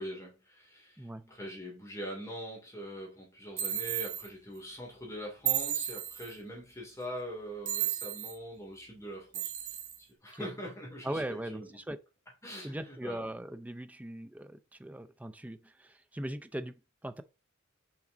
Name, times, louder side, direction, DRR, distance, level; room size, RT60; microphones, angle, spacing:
voice 1, 0.0-11.8 12.4-13.2, equal, 15° left, 2.6 m, -43 dB
voice 2, 1.0-1.3 10.3-10.5 11.0-12.0 12.6-17.2, right 1 dB, 5° right, 0.4 m, -40 dB
sound 1, 3.6-4.3 5.4-6.3 7.6-8.4 9.3-10.0, right 11 dB, 40° right, 0.9 m, -33 dB
5.9 x 5.1 x 3.8 m
head